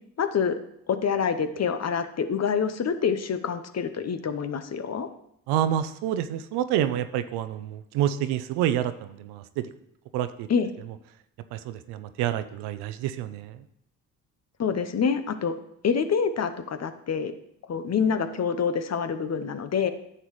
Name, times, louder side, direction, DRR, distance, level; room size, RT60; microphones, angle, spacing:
voice 1, 0.2-0.6 0.9-5.1 10.5-10.7 14.6-15.6 15.8-17.3 17.7-19.9, left 6 dB, 40° left, 10 dB, 0.8 m, -26 dB
voice 2, 5.5-9.7 10.1-10.5 11.5-13.6, right 11 dB, 80° right, 12 dB, 0.6 m, -28 dB
9.8 x 6.8 x 3.1 m, 0.76 s
hypercardioid pair, 55°, 40 cm